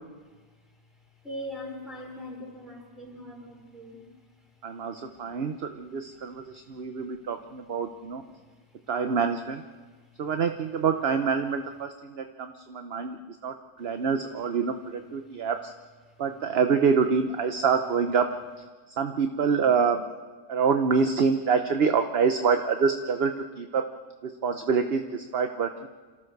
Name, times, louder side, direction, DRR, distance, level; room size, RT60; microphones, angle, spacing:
voice 1, 1.2-4.1 5.2-5.4 6.3-6.4, equal, ahead, -2 dB, 4.6 m, -40 dB
voice 2, 4.6-8.2 8.9-9.6 10.2-15.7 16.2-18.3 18.9-20.1 20.5-23.8 24.2-25.9, right 5 dB, 45° right, 7 dB, 0.9 m, -26 dB
28.0 x 14.5 x 6.6 m, 1.4 s
omnidirectional pair, 1.7 m